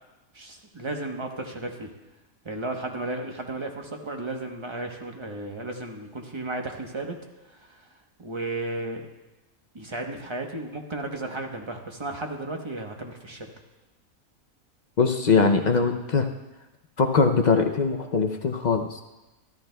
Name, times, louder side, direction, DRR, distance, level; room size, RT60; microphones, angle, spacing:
voice 1, 0.3-1.9 2.4-7.2 8.2-9.0 9.7-13.5, right 2 dB, 25° right, 2 dB, 0.9 m, -34 dB
voice 2, 15.0-16.3 17.0-19.0, left 4 dB, 55° left, 4 dB, 0.5 m, -22 dB
14.5 x 13.5 x 2.3 m, 1.1 s
omnidirectional pair, 1.5 m